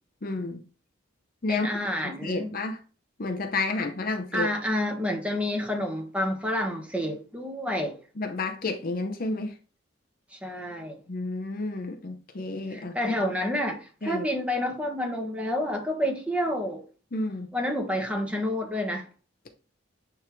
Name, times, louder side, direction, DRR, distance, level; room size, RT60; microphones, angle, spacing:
voice 1, 0.2-0.6 1.4-1.7 2.2-2.8 3.2-4.5 8.2-9.5 11.1-13.0 14.0-14.3 17.1-17.5, left 2 dB, 45° left, 0.7 m, -30 dB
voice 2, 1.5-2.5 4.3-8.0 10.3-11.0 12.7-16.8 17.5-19.0, left 1 dB, 5° right, 1.3 m, -29 dB
9.7 x 3.6 x 3.1 m
head